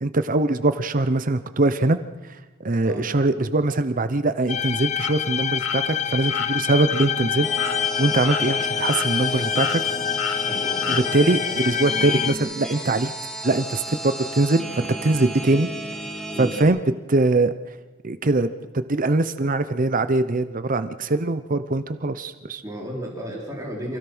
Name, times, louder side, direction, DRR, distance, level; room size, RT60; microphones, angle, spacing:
voice 1, 0.0-2.0 2.6-7.5 8.0-9.8 10.9-13.1 13.4-15.7 16.4-16.8 17.1-17.5 18.0-22.6, right 2 dB, 45° right, 11 dB, 0.8 m, -22 dB
sound 1, 4.5-12.3, left 8 dB, 35° left, 0.6 m, -26 dB
sound 2, 5.0-5.1 5.6-5.8 6.3-6.5 6.9-7.1 7.6-7.8 8.2-8.4 8.9-9.3 9.6-9.8 10.2-10.4 10.8-11.0, left 5 dB, 80° left, 2.0 m, -30 dB
sound 3, 7.4-16.6, right 1 dB, ahead, 2.8 m, -33 dB
voice 2, 10.5-11.0 16.3-16.6 22.6-24.0, equal, 20° right, -2 dB, 3.7 m, -33 dB
27.5 x 16.5 x 6.2 m, 1.2 s
head